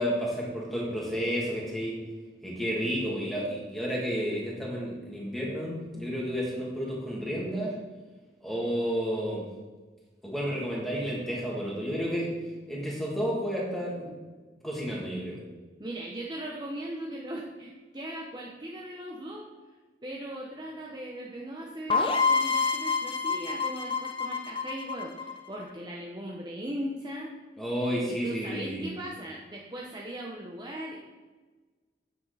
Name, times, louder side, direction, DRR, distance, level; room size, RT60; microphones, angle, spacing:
voice 1, 0.0-1.9 2.4-7.8 8.4-9.5 10.2-12.3 12.7-14.1 14.6-15.4 27.6-28.9, equal, ahead, -5 dB, 2.3 m, -31 dB
voice 2, 15.8-19.5 20.0-27.3 28.1-31.0, right 1 dB, 25° right, -2 dB, 0.8 m, -38 dB
sound 1, 21.9-25.6, left 4 dB, 30° left, 0.7 m, -27 dB
9.6 x 7.3 x 4.1 m, 1.3 s
head